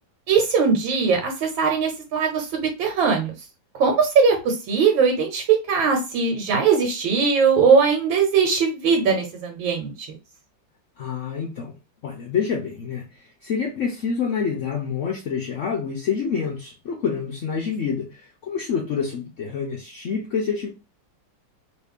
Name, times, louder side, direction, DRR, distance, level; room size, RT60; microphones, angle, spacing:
voice 1, 0.3-3.3 3.8-10.1, right 5 dB, 85° right, 3 dB, 1.6 m, -20 dB
voice 2, 11.0-11.8 12.0-20.7, left 6 dB, 65° left, -1 dB, 0.8 m, -27 dB
3.2 x 2.7 x 3.4 m, 0.28 s
omnidirectional pair, 2.1 m